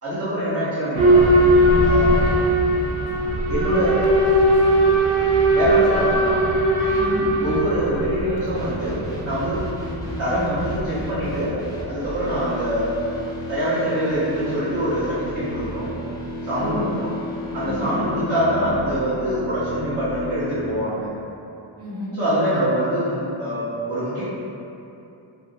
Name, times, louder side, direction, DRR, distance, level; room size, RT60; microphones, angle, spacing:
voice 1, 0.0-1.4 1.8-2.2 3.5-4.0 5.5-6.4 7.4-9.0 9.2-9.6 10.2-11.5 11.9-12.9 13.5-15.9 16.4-17.1 17.5-21.1 22.1-24.2, equal, 30° right, -13 dB, 0.8 m, -24 dB
Boat Water vehicle / Alarm, 0.9-11.6, right 1 dB, 75° right, 0.5 m, -19 dB
voice 2, 6.9-7.2 16.5-17.0 17.6-17.9 21.8-22.1, left 1 dB, 50° right, -11 dB, 1.1 m, -31 dB
sound 1, 8.5-20.8, left 1 dB, 10° left, 0.5 m, -33 dB
2.3 x 2.0 x 2.6 m, 2.7 s
cardioid pair, 60°, 50 cm